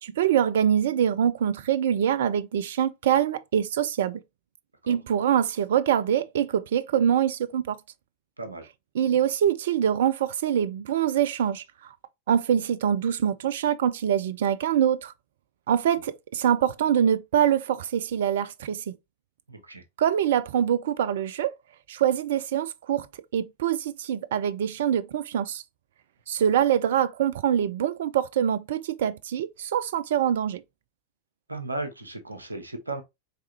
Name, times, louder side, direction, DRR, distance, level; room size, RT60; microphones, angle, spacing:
voice 1, 0.0-4.2 4.9-7.8 8.9-11.6 12.3-15.1 15.7-18.8 20.0-21.5 21.9-23.1 23.3-25.6 26.3-30.6, right 9 dB, 60° right, 0.4 m, -24 dB
voice 2, 19.5-19.8 31.5-33.0, right 2 dB, 80° right, 0.9 m, -35 dB
4.6 x 3.4 x 2.9 m
figure-of-eight pair, 90°, 0 cm